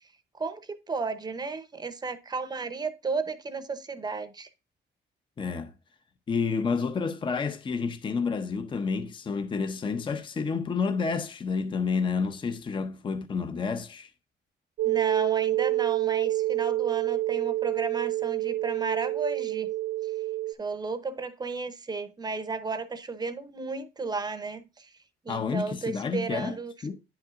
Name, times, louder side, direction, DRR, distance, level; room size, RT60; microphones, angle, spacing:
voice 1, 0.4-4.5 14.8-19.7 20.0-20.1 20.6-24.9 25.2-26.7, right 4 dB, 20° right, 0.7 m, -33 dB
voice 2, 5.4-5.7 6.3-14.1 25.3-26.6 26.8-27.0, left 5 dB, 25° left, 0.6 m, -29 dB
sound 1, 14.8-20.5, right 16 dB, 80° right, 0.6 m, -27 dB
9.8 x 5.7 x 2.4 m
cardioid pair, 150°, 19 cm